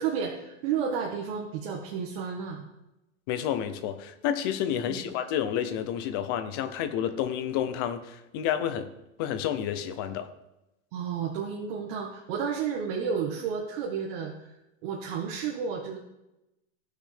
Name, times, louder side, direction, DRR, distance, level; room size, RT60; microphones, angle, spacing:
voice 1, 0.0-2.6 4.8-5.0 10.9-14.3 14.8-16.0, right 6 dB, 50° right, -1 dB, 1.4 m, -31 dB
voice 2, 3.3-8.9 9.2-10.3, left 9 dB, 20° left, 10 dB, 0.3 m, -30 dB
16.0 x 6.3 x 3.3 m, 0.92 s
supercardioid pair, 160°, 37 cm